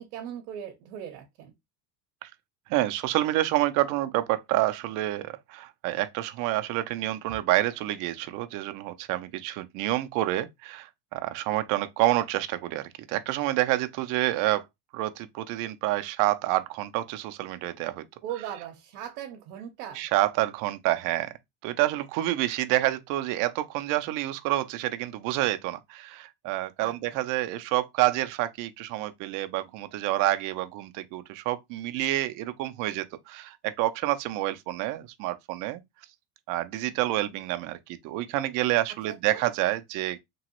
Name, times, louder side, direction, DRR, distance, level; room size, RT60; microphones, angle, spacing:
voice 1, 0.0-1.5 18.2-20.1 26.8-27.0 38.9-39.4, right 10 dB, 80° right, 0.7 m, -39 dB
voice 2, 2.7-14.6 14.9-18.1 20.0-21.3 21.6-35.8 36.5-40.2, right 15 dB, 45° right, 0.5 m, -28 dB
3.0 x 2.3 x 2.9 m
supercardioid pair, 130°, 44 cm